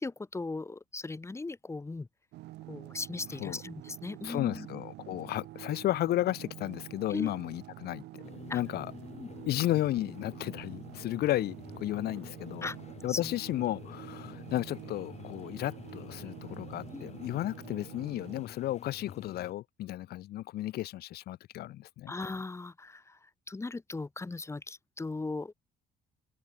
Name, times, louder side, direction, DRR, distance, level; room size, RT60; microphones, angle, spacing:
voice 1, 0.0-2.1 2.7-4.7 5.1-5.2 7.1-7.3 8.5-8.6 9.1-9.3 12.6-12.8 13.1-13.3 16.9-17.1 22.1-25.5, left 3 dB, 15° left, 1.9 m, -38 dB
sound 1, 2.3-18.4, right 17 dB, 80° right, 6.3 m, -47 dB
voice 2, 4.2-8.2 8.5-8.9 9.5-12.7 13.0-22.1, left 14 dB, 70° left, 1.2 m, -33 dB
sound 2, 8.2-19.5, left 8 dB, 40° left, 1.3 m, -49 dB
open air
cardioid pair, 110°, 17 cm